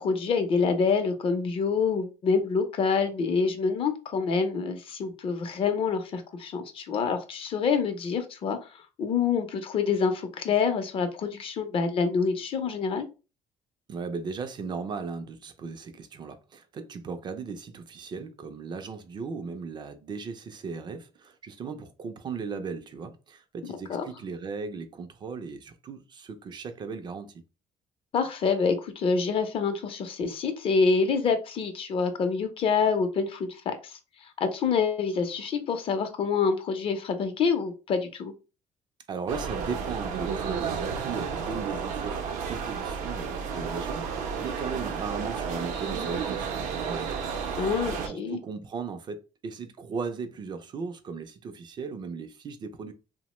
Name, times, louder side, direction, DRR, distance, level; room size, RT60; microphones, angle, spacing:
voice 1, 0.0-13.0 23.6-24.1 28.1-38.3 47.6-48.4, left 5 dB, 45° left, 0.5 m, -27 dB
voice 2, 13.9-27.3 39.1-52.9, right 5 dB, 35° right, 0.4 m, -37 dB
sound 1, 39.3-48.1, right 6 dB, 80° right, 0.6 m, -32 dB
2.7 x 2.0 x 3.0 m
cardioid pair, 130°, 12 cm